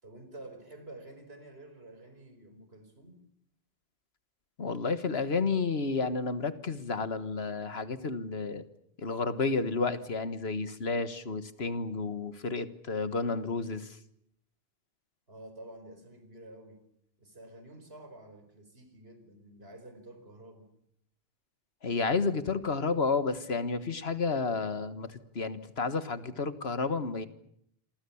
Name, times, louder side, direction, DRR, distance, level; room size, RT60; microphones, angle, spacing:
voice 1, 0.0-3.2 15.3-16.8 17.2-20.7, right 1 dB, 80° right, 8 dB, 5.1 m, -49 dB
voice 2, 4.6-8.6 9.0-14.0 21.8-27.3, left 4 dB, 80° left, 12 dB, 1.8 m, -31 dB
27.0 x 24.5 x 7.2 m, 0.73 s
omnidirectional pair, 1.0 m